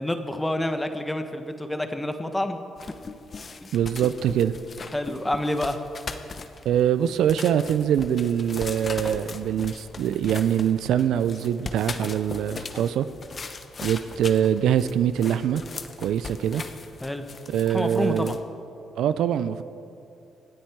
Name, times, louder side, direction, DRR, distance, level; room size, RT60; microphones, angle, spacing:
voice 1, 0.0-2.6 3.6-3.7 4.9-5.8 17.0-17.3 17.7-18.4, left 1 dB, 10° left, 7 dB, 1.4 m, -28 dB
sound 1, 2.8-18.4, left 4 dB, 45° left, 1.0 m, -39 dB
voice 2, 3.7-4.6 6.6-13.1 13.8-15.6 16.0-16.6 17.5-18.4 19.0-19.6, right 9 dB, 75° right, 13 dB, 0.4 m, -23 dB
26.0 x 8.8 x 4.7 m, 2.8 s
supercardioid pair, 60°, 0 cm